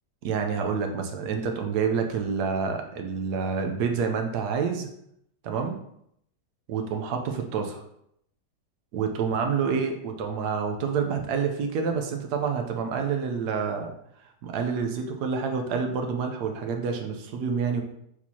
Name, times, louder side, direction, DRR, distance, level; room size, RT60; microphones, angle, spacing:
voice 1, 0.2-4.9 5.4-5.8 6.7-7.8 8.9-13.9 14.4-17.8, right 6 dB, 75° right, 4 dB, 1.2 m, -28 dB
4.4 x 4.4 x 2.7 m, 0.73 s
omnidirectional pair, 1.8 m